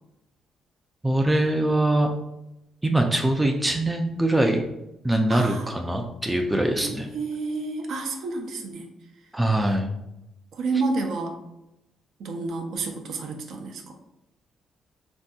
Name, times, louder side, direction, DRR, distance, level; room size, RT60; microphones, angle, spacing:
voice 1, 1.0-2.1 2.8-4.6 5.0-7.1 9.3-9.9, right 1 dB, 10° right, 2 dB, 0.3 m, -23 dB
voice 2, 5.3-5.7 6.8-8.9 10.5-11.4 12.2-14.0, right 3 dB, 75° right, 3 dB, 0.5 m, -30 dB
3.4 x 2.6 x 2.3 m, 0.89 s
cardioid pair, 90°, 0 cm